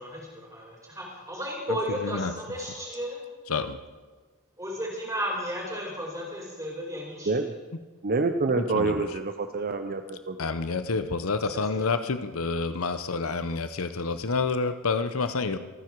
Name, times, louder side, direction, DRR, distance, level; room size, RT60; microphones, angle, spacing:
voice 1, 0.0-3.2 4.6-7.5 11.4-11.9, equal, 15° right, -2 dB, 5.0 m, -34 dB
voice 2, 1.7-2.3 3.5-3.8 8.5-9.1 10.4-15.6, left 4 dB, 75° left, 10 dB, 0.8 m, -29 dB
voice 3, 8.0-10.5, right 3 dB, 45° right, 8 dB, 0.7 m, -27 dB
26.0 x 9.8 x 4.7 m, 1.4 s
head